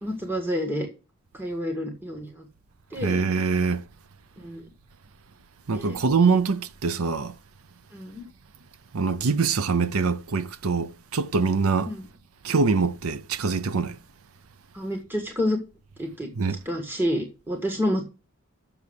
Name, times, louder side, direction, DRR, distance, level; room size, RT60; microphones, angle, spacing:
voice 1, 0.0-0.9 1.3-2.4 2.9-3.2 4.4-4.7 5.7-6.0 7.9-8.3 11.8-12.0 14.7-15.6 16.0-16.3 16.7-18.0, equal, 10° right, 1.7 m, -29 dB
voice 2, 3.0-3.8 5.7-7.3 8.9-11.9 12.4-14.0 16.4-16.6, right 4 dB, 80° right, 0.7 m, -24 dB
7.1 x 6.9 x 8.0 m
head